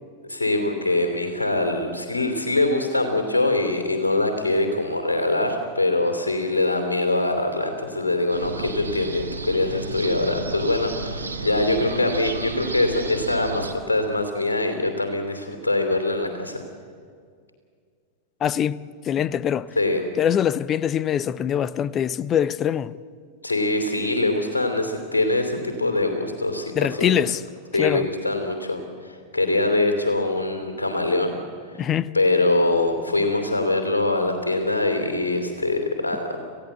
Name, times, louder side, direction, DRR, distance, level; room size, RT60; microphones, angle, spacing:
voice 1, 0.2-16.6 19.8-20.0 23.4-27.3 27.7-31.4 32.1-36.4, left 2 dB, 75° left, 2.8 m, -23 dB
sound 1, 8.3-13.7, right 3 dB, 80° right, 1.7 m, -32 dB
voice 2, 18.4-19.7 20.2-23.0 26.8-27.4 27.7-28.1 31.8-32.1, left 9 dB, 30° left, 0.6 m, -23 dB
28.0 x 16.0 x 7.9 m
figure-of-eight pair, 90°, 0 cm